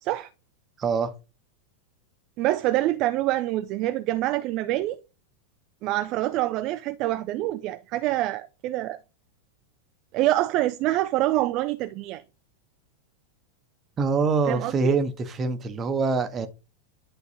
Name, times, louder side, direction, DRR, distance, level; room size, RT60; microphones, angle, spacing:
voice 1, 0.8-1.1 14.0-16.5, right 4 dB, 25° right, 1.0 m, -25 dB
voice 2, 2.4-5.0 5.8-9.0 10.1-12.2 14.5-15.0, right 15 dB, 40° right, 0.4 m, -26 dB
10.5 x 3.9 x 2.8 m
figure-of-eight pair, 90°, 0 cm